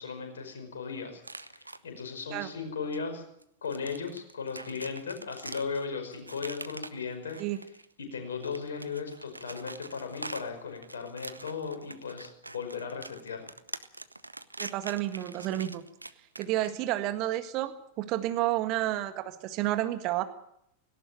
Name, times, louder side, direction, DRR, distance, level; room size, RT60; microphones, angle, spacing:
voice 1, 0.0-3.2 3.6-7.4 8.0-13.5, left 5 dB, 65° left, 5 dB, 5.3 m, -37 dB
sound 1, 1.2-2.0 2.9-3.0 3.4-7.9 8.3-16.8, right 2 dB, 85° right, 0.8 m, -44 dB
voice 2, 14.6-15.8 16.4-20.2, right 14 dB, 40° right, 10 dB, 1.7 m, -30 dB
18.0 x 17.5 x 8.9 m, 0.73 s
figure-of-eight pair, 90°, 0 cm